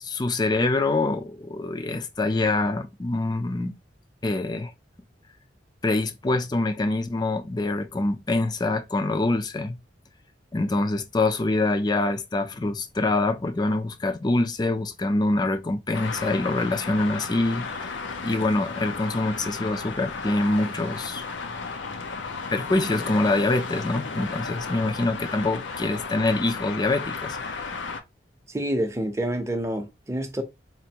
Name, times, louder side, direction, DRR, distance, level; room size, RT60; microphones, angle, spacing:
voice 1, 0.0-3.7 4.2-4.7 5.8-9.8 10.5-17.9 18.2-21.2 22.5-27.4, left 2 dB, 25° left, 0.4 m, -25 dB
Traffic noise roadway noise, 15.9-28.0, left 4 dB, 90° left, 0.6 m, -34 dB
voice 2, 28.5-30.4, right 1 dB, 15° right, 0.7 m, -27 dB
4.3 x 2.5 x 2.9 m
head